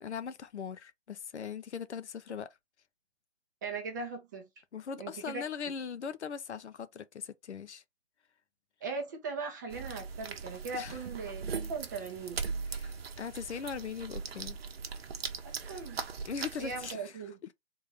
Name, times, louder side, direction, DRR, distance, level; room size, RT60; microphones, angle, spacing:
voice 1, 0.0-2.5 4.7-7.8 10.7-11.0 12.7-14.6 16.2-17.2, left 6 dB, 65° left, 0.6 m, -40 dB
voice 2, 3.6-4.4 5.0-5.4 8.8-11.4 11.7-12.4 15.4-16.0 16.6-17.4, right 4 dB, 15° right, 0.5 m, -39 dB
sound 1, 9.7-16.9, right 5 dB, 55° right, 0.8 m, -39 dB
3.7 x 2.6 x 3.4 m
figure-of-eight pair, 135°, 37 cm